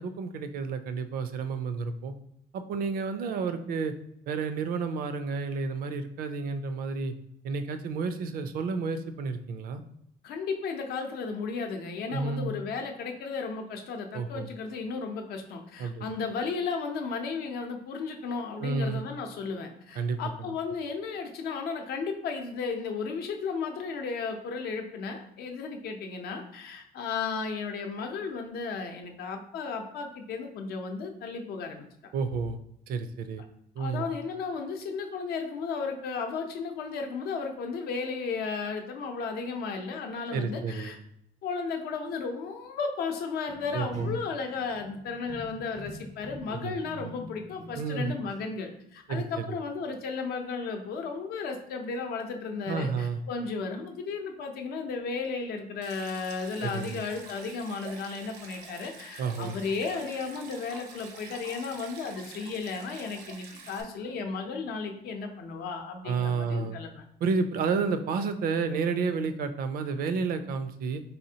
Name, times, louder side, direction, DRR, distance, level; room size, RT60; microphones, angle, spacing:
voice 1, 0.0-2.1 2.5-3.9 4.3-7.1 7.4-9.8 12.1-12.5 14.1-14.5 15.8-16.1 18.6-19.0 20.0-20.2 32.1-32.6 32.9-33.4 33.8-34.1 40.3-40.9 43.7-44.2 46.5-47.1 47.8-48.1 49.1-49.6 52.7-53.2 56.6-57.0 59.2-59.6 66.0-66.8 67.2-71.0, right 4 dB, 65° right, 9 dB, 0.4 m, -31 dB
voice 2, 10.2-32.1 33.8-41.0 41.4-67.0, left 4 dB, 75° left, 4 dB, 0.6 m, -34 dB
sound 1, 43.5-48.0 48.3-48.6, left 2 dB, 20° left, 0.4 m, -46 dB
Stream, 55.8-63.8, right 4 dB, 85° right, 0.8 m, -47 dB
4.1 x 3.3 x 2.8 m, 0.76 s
cardioid pair, 170°, 16 cm